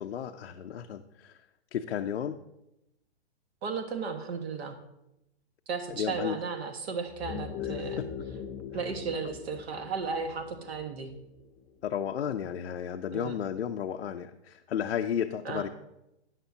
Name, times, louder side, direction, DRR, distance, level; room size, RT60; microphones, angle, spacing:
voice 1, 0.0-1.4 1.7-2.4 5.9-6.4 8.0-8.1 11.8-15.7, left 9 dB, 80° left, 4 dB, 0.7 m, -33 dB
voice 2, 3.6-4.8 5.7-8.0 8.7-11.1 13.1-13.4 15.4-15.7, right 5 dB, 70° right, 6 dB, 1.7 m, -35 dB
sound 1, 7.1-11.9, left 8 dB, 25° left, 0.7 m, -40 dB
13.0 x 9.1 x 2.8 m, 0.87 s
hypercardioid pair, 120°, 32 cm